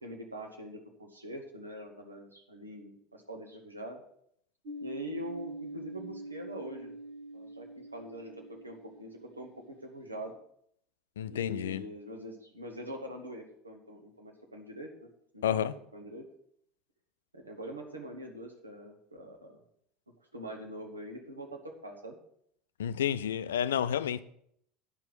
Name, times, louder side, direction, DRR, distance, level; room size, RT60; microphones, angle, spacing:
voice 1, 0.0-4.0 4.8-7.0 7.3-9.5 9.8-10.3 11.3-15.1 15.3-16.2 17.3-19.6 20.3-22.2, equal, 85° right, 1.5 m, -44 dB
sound 1, 4.7-10.2, right 1 dB, 55° right, 1.4 m, -45 dB
voice 2, 11.2-11.8 15.4-15.7 22.8-24.2, left 9 dB, 70° left, 0.4 m, -30 dB
9.7 x 6.1 x 6.8 m
figure-of-eight pair, 70°, 0 cm